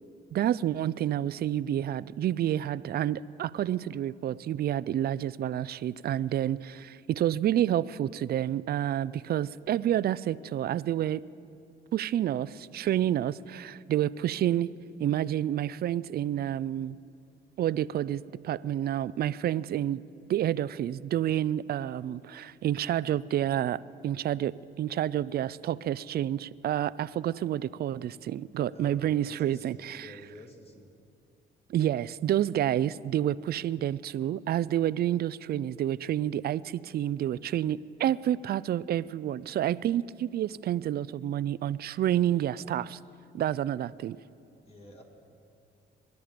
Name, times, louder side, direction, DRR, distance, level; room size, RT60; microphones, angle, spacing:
voice 1, 0.3-11.2 11.9-14.7 15.0-17.0 17.6-20.0 20.3-30.1 31.7-43.0 43.3-44.2, right 11 dB, 50° right, 19 dB, 0.4 m, -29 dB
voice 2, 28.7-30.9 44.7-45.0, left 1 dB, 30° left, 1 dB, 2.5 m, -50 dB
24.0 x 10.5 x 5.1 m, 2.6 s
cardioid pair, 90°, 20 cm